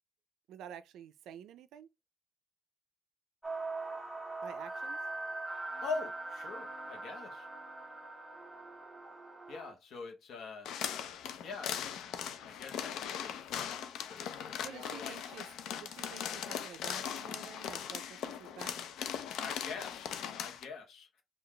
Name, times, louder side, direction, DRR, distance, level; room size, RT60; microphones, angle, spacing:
voice 1, 0.5-1.9 4.4-5.0 14.6-15.5 15.8-18.8, right 9 dB, 85° right, 0.4 m, -50 dB
sound 1, 3.4-9.7, right 2 dB, 5° right, 0.7 m, -42 dB
voice 2, 5.8-7.5 9.5-10.7 11.4-11.8 12.4-13.4 14.1-15.2 19.3-21.1, left 4 dB, 55° left, 0.9 m, -43 dB
sound 2, 10.7-20.7, left 8 dB, 80° left, 0.4 m, -39 dB
3.9 x 2.4 x 3.2 m
cardioid pair, 175°, 0 cm